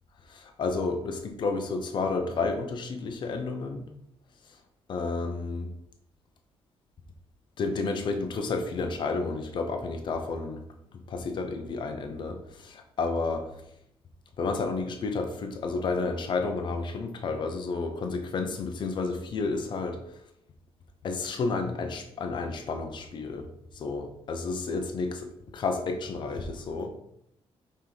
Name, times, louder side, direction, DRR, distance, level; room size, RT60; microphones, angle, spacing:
voice 1, 0.3-3.9 4.9-5.7 7.6-10.6 10.9-13.6 14.4-20.0 21.0-23.5 23.7-26.9, left 3 dB, 50° left, 5 dB, 1.0 m, -31 dB
5.9 x 4.4 x 5.2 m, 0.76 s
wide cardioid pair, 175°, 11 cm